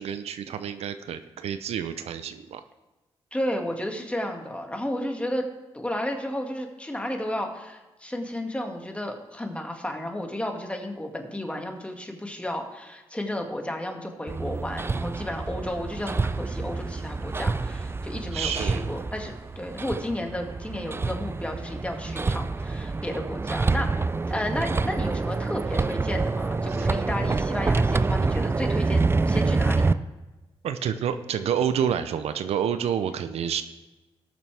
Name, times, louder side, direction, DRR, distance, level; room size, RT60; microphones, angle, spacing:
voice 1, 0.0-2.6 18.3-18.8 30.6-33.6, right 8 dB, 80° right, 11 dB, 0.6 m, -28 dB
voice 2, 3.3-5.4 5.7-29.9, left 1 dB, 10° left, 3 dB, 2.1 m, -32 dB
Hammer, 14.3-29.9, right 3 dB, 25° right, 0.4 m, -27 dB
18.5 x 6.8 x 3.4 m, 1.1 s
cardioid pair, 65°, 10 cm